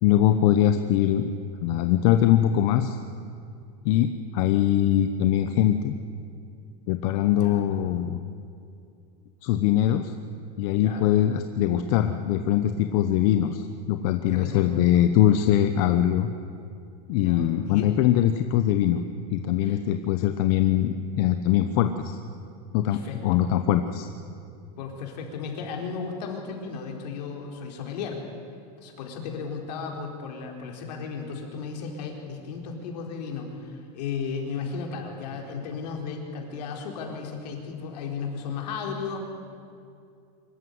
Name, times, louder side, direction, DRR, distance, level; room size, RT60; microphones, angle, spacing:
voice 1, 0.0-1.3 1.6-3.0 3.8-6.0 6.9-8.2 9.4-10.1 10.6-16.3 17.1-19.0 19.3-22.2 22.7-24.1, left 11 dB, 55° left, 8 dB, 1.0 m, -22 dB
voice 2, 14.3-14.6 17.1-17.9 19.6-19.8 22.8-23.4 24.8-28.2 28.8-39.2, left 5 dB, 80° left, 2 dB, 4.4 m, -35 dB
24.5 x 14.0 x 9.6 m, 2.4 s
supercardioid pair, 150°, 21 cm